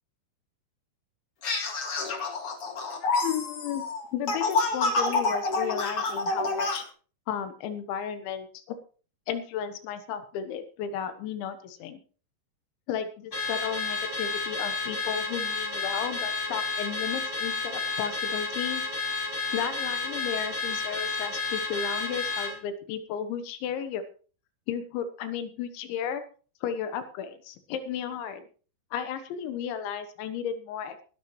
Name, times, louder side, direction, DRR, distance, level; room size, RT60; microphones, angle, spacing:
sound 1, 1.4-6.8, left 3 dB, 45° left, 2.2 m, -28 dB
voice 1, 3.0-3.8 4.1-6.9 7.3-8.8 9.3-12.0 12.9-18.8 19.5-24.0 24.7-26.2 26.6-28.5 28.9-31.0, left 8 dB, 90° left, 10 dB, 3.5 m, -34 dB
Car / Alarm, 13.3-22.6, left 4 dB, 70° left, 0.5 m, -31 dB
20.5 x 11.0 x 3.1 m, 0.39 s
omnidirectional pair, 5.1 m